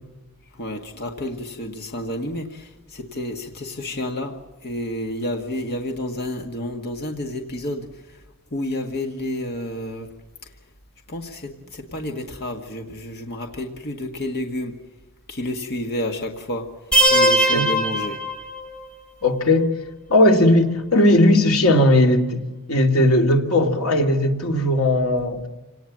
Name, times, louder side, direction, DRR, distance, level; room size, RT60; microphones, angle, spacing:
voice 1, 0.6-2.4 2.9-4.3 4.6-7.9 8.5-10.1 11.1-11.5 11.9-14.7 15.3-16.6 17.1-18.2, left 1 dB, 50° left, 1.9 m, -29 dB
sound 1, 16.9-18.9, right 1 dB, 5° left, 2.8 m, -19 dB
voice 2, 19.2-19.7 20.1-22.4 22.7-25.5, left 1 dB, 75° left, 2.6 m, -17 dB
28.0 x 18.5 x 7.5 m
head